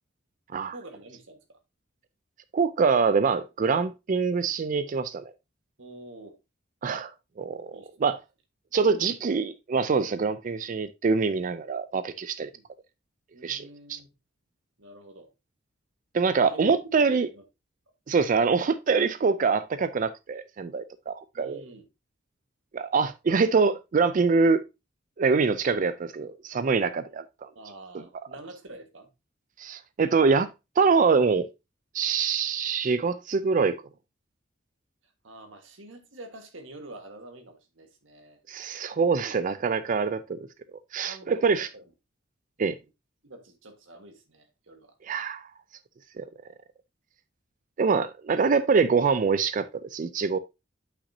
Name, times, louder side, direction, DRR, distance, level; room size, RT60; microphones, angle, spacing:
voice 1, 0.7-1.6 5.8-6.4 7.7-7.9 12.5-12.7 13.3-14.1 14.8-15.3 16.5-16.7 17.0-17.4 21.3-21.9 27.5-29.1 35.0-38.4 41.0-41.8 42.6-42.9 43.2-44.9, right 2 dB, 85° right, 1.5 m, -47 dB
voice 2, 2.5-5.2 6.8-7.1 7.4-8.2 8.7-12.5 13.4-14.0 16.1-17.3 18.1-21.6 22.7-24.6 25.2-27.5 29.6-30.5 30.8-31.5 31.9-33.8 38.5-40.4 40.9-41.7 42.6-42.8 45.0-45.5 46.2-46.3 47.8-50.4, right 5 dB, 45° right, 0.4 m, -24 dB
8.2 x 5.8 x 2.7 m
head